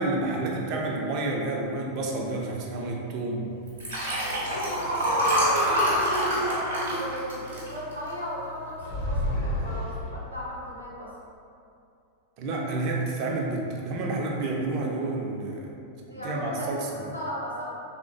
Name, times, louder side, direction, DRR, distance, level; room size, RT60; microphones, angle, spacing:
voice 1, 0.0-3.5 12.4-15.8 16.2-17.0, right 2 dB, 40° right, -1 dB, 0.4 m, -29 dB
Liquid, 3.7-8.3 8.8-9.1 9.3-9.4, equal, 65° right, 0.8 m, -26 dB
voice 2, 4.3-6.3 6.8-11.1 16.0-16.9 17.1-17.6, equal, 90° left, -7 dB, 0.6 m, -36 dB
sound 1, 8.8-10.4, left 1 dB, 45° left, 0.5 m, -29 dB
3.3 x 2.1 x 2.4 m, 2.6 s
figure-of-eight pair, 90°, 0 cm